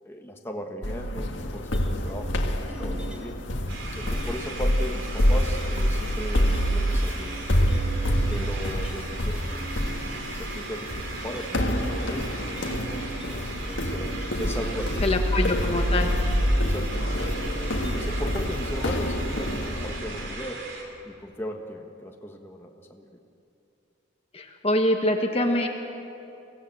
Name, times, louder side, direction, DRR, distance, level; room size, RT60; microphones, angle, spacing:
voice 1, 0.0-3.3 4.0-7.7 8.3-9.9 10.4-14.1 14.4-15.4 16.6-17.3 17.8-20.7 21.0-23.0, equal, 10° left, 2 dB, 1.4 m, -37 dB
sound 1, 0.8-20.3, equal, 75° left, 1.7 m, -27 dB
sound 2, 1.7-3.5 4.1-9.2 9.5-20.9, right 2 dB, 5° right, 2.4 m, -44 dB
sound 3, 3.7-20.8, right 3 dB, 85° right, 3.8 m, -39 dB
voice 2, 15.0-16.1 24.3-25.7, left 1 dB, 30° left, 3 dB, 1.3 m, -24 dB
24.0 x 16.5 x 7.8 m, 2.8 s
head